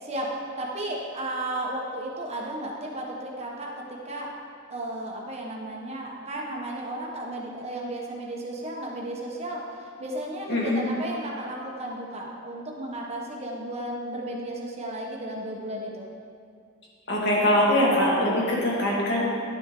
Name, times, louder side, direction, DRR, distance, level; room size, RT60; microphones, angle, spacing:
voice 1, 0.0-4.3 4.7-16.0, right 1 dB, 30° right, -2 dB, 1.4 m, -34 dB
voice 2, 10.5-10.9 17.1-19.4, left 1 dB, 60° left, -4 dB, 2.2 m, -22 dB
11.0 x 7.7 x 3.9 m, 2.2 s
head